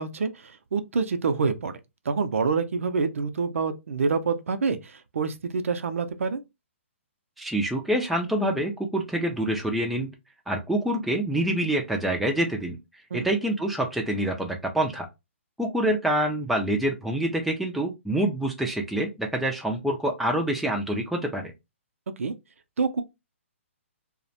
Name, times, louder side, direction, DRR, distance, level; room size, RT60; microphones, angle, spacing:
voice 1, 0.0-1.8 2.1-6.4 13.1-13.3 22.2-22.3 22.8-23.0, right 4 dB, 80° right, 0.4 m, -27 dB
voice 2, 7.4-10.1 10.5-12.8 13.1-15.1 15.6-21.5, right 1 dB, ahead, 0.3 m, -26 dB
2.3 x 2.1 x 2.7 m
hypercardioid pair, 145°, 7 cm